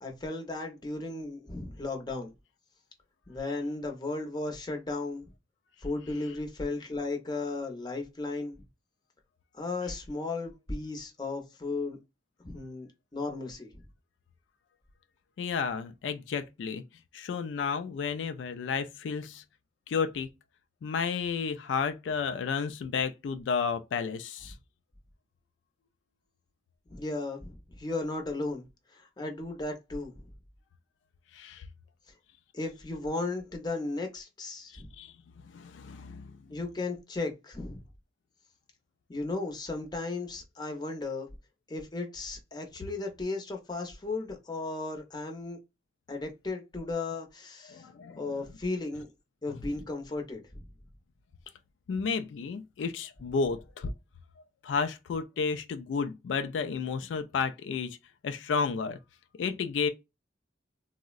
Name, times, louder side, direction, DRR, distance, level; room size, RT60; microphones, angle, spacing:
voice 1, 0.0-2.3 3.3-5.3 5.8-8.7 9.5-12.0 12.4-13.7 26.9-28.6 28.9-30.2 32.1-32.2 32.5-34.9 36.5-37.8 39.1-41.3 41.7-45.6 46.1-47.9 48.2-49.1 49.4-50.6, left 3 dB, 25° left, 0.6 m, -35 dB
voice 2, 15.4-16.8 17.1-19.4 19.9-20.3 20.8-24.5 31.3-31.6 34.7-35.1 35.4-36.4 47.7-48.2 51.9-53.9 54.6-58.0 58.2-59.0 59.4-59.9, left 5 dB, 85° left, 0.3 m, -32 dB
3.5 x 2.0 x 2.3 m
head